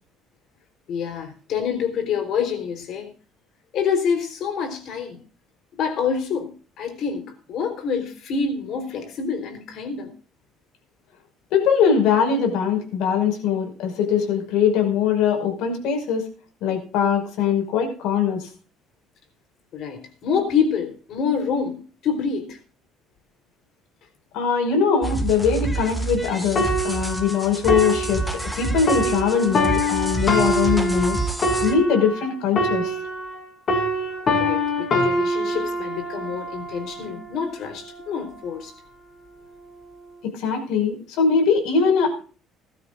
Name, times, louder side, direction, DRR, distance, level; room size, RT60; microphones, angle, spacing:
voice 1, 0.9-3.1 3.7-5.2 5.8-10.1 19.7-22.6 34.3-38.7, left 6 dB, 50° left, 3.8 m, -27 dB
voice 2, 11.5-16.3 16.6-18.5 24.3-31.2 31.6-32.9 40.2-42.2, left 6 dB, 75° left, 5.6 m, -21 dB
sound 1, 25.0-31.7, right 2 dB, 5° left, 1.8 m, -28 dB
sound 2, 26.6-33.4 33.7-37.3 37.9-38.1, equal, 35° left, 3.3 m, -25 dB
20.5 x 12.5 x 2.5 m
cardioid pair, 165°, 0 cm